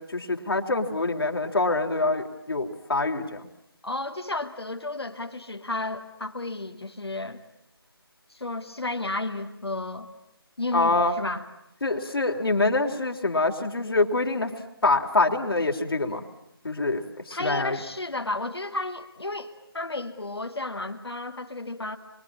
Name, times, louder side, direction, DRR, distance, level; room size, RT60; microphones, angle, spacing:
voice 1, 0.0-3.5 10.7-11.2 11.8-14.5 14.8-16.2 16.6-17.8, left 2 dB, 70° left, 2 dB, 3.3 m, -25 dB
voice 2, 3.8-7.4 8.3-10.1 10.6-11.4 17.3-22.0, left 2 dB, 85° left, 3 dB, 2.7 m, -32 dB
28.0 x 23.5 x 8.7 m, 0.83 s
figure-of-eight pair, 165°, 13 cm